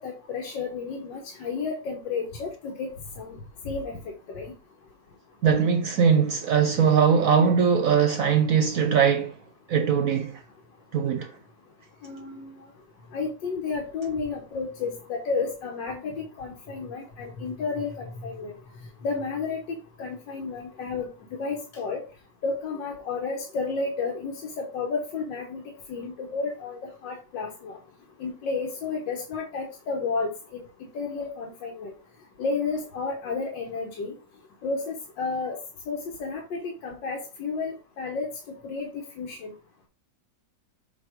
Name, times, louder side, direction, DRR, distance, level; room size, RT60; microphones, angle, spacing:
voice 1, 0.0-2.9 3.2-4.5 12.0-12.5 13.1-18.5 19.0-22.0 22.4-27.8 28.2-30.6 30.9-31.9 32.4-34.2 34.6-35.6 35.9-38.3 38.6-39.5, left 4 dB, 85° left, 1.7 m, -32 dB
voice 2, 5.4-9.4 9.7-10.4 10.9-11.4, right 7 dB, 65° right, 0.9 m, -21 dB
7.3 x 2.9 x 5.0 m
omnidirectional pair, 1.9 m